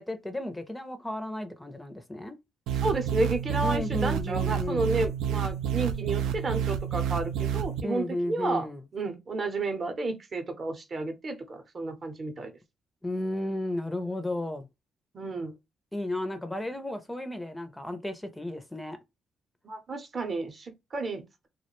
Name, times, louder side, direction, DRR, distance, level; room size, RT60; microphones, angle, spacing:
voice 1, 0.0-2.4 3.6-4.9 7.8-8.8 13.0-14.7 15.9-19.0, left 1 dB, 10° left, 0.4 m, -33 dB
sound 1, 2.7-7.8, right 9 dB, 90° right, 0.3 m, -29 dB
voice 2, 2.8-8.7 8.9-12.5 15.1-15.5 19.6-21.5, right 3 dB, 45° right, 0.6 m, -31 dB
2.3 x 2.1 x 2.9 m
cardioid pair, 90°, 0 cm